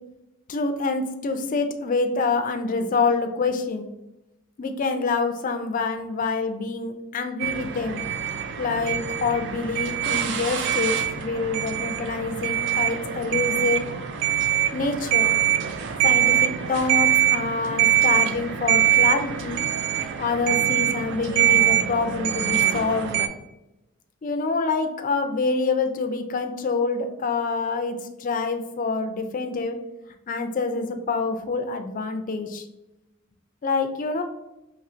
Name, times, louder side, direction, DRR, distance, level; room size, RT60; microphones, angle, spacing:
voice 1, 0.5-3.9 4.6-8.0 8.6-13.9 14.7-15.3 16.0-19.6 20.2-23.3 24.2-29.8 30.3-32.6 33.6-34.2, left 4 dB, 35° left, 6 dB, 0.4 m, -26 dB
sound 1, 7.4-23.3, right 10 dB, 55° right, 0.4 m, -23 dB
4.3 x 3.0 x 2.5 m, 0.94 s
head